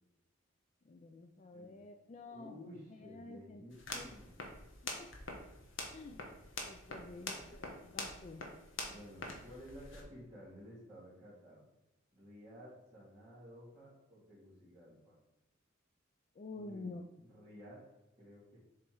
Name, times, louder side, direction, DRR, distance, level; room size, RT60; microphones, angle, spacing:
voice 1, 0.9-2.5 2.9-3.7 3.9-4.1 4.8-5.1 5.9-6.2 6.7-8.5 16.4-17.0, left 3 dB, 35° left, 6 dB, 0.3 m, -49 dB
voice 2, 1.5-1.8 2.3-4.3 6.9-7.6 8.9-11.6 12.1-15.1 16.5-16.9 17.2-17.8 18.2-18.6, equal, 20° right, -14 dB, 2.3 m, -54 dB
sound 1, 3.7-10.0, left 3 dB, 65° left, 1.2 m, -45 dB
7.1 x 3.4 x 4.5 m, 0.93 s
head